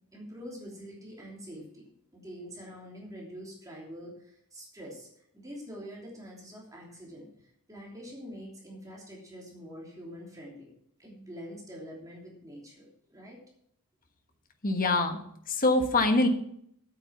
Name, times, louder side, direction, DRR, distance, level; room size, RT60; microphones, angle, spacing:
voice 1, 0.1-1.8 2.1-10.7 11.0-13.4, equal, 15° right, -3 dB, 3.1 m, -45 dB
voice 2, 14.6-15.2 15.5-16.3, left 2 dB, 40° left, 5 dB, 1.4 m, -24 dB
9.0 x 8.6 x 5.9 m, 0.69 s
head